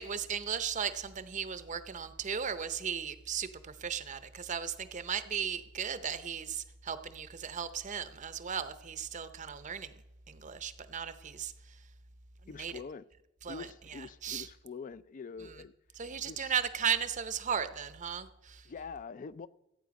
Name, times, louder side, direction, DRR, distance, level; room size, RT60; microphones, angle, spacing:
voice 1, 0.0-10.0 10.3-11.8 12.4-12.7 13.4-14.5 15.4-15.6 16.0-18.7, right 7 dB, 35° right, 12 dB, 0.6 m, -36 dB
voice 2, 12.5-13.0 13.5-15.7 16.2-16.5 18.7-19.5, left 5 dB, 40° left, 16 dB, 0.3 m, -44 dB
14.5 x 8.8 x 5.2 m, 0.96 s
head